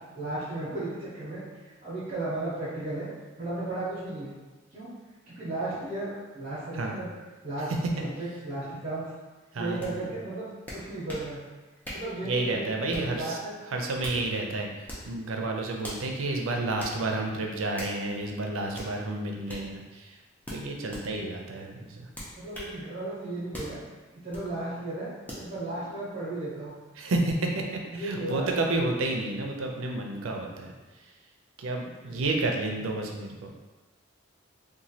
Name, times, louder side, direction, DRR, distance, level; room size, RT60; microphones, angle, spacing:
voice 1, 0.1-1.4 1.8-3.1 3.4-4.4 4.7-5.0 5.3-7.1 7.4-7.7 8.0-9.1 9.5-10.5 10.7-11.4 11.9-13.5 22.3-23.8 24.1-25.1 25.4-26.7 27.9-28.5 32.0-32.2 32.5-32.7, right 2 dB, 40° right, -10 dB, 0.7 m, -34 dB
voice 2, 9.5-10.0 12.2-13.4 13.7-20.2 20.5-22.1 27.0-30.7 31.0-31.1 31.6-33.5, right 2 dB, 85° right, 2 dB, 0.4 m, -30 dB
sound 1, 9.8-9.9 10.7-11.3 11.8-12.1 12.9-13.2 13.8-14.2 14.8-15.1 15.8-16.1 16.8-17.0 17.8-18.0 18.7-18.9 19.5-19.7 20.4-21.1 22.1-22.7 23.5-23.8 24.3-24.5 25.3-25.5, equal, 10° left, 0.5 m, -40 dB
3.0 x 2.2 x 2.7 m, 1.2 s
head